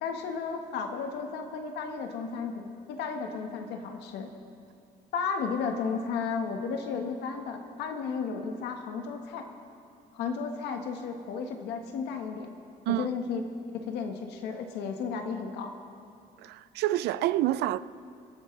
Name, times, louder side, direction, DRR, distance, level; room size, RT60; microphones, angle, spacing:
voice 1, 0.0-4.3 5.1-9.5 10.1-12.5 12.9-13.4 13.7-15.7, left 5 dB, 80° left, 1.5 m, -33 dB
voice 2, 16.4-17.8, right 15 dB, 80° right, 0.5 m, -27 dB
27.5 x 11.0 x 3.3 m
cardioid pair, 110°, 17 cm